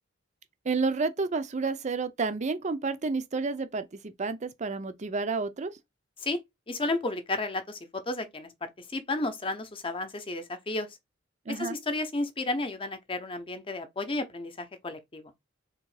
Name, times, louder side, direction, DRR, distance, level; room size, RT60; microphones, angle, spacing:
voice 1, 0.6-5.7 11.5-11.8, right 4 dB, 40° right, 0.5 m, -30 dB
voice 2, 6.7-8.5 8.9-10.9 11.6-15.2, left 2 dB, 30° left, 0.7 m, -32 dB
3.7 x 3.0 x 4.8 m
head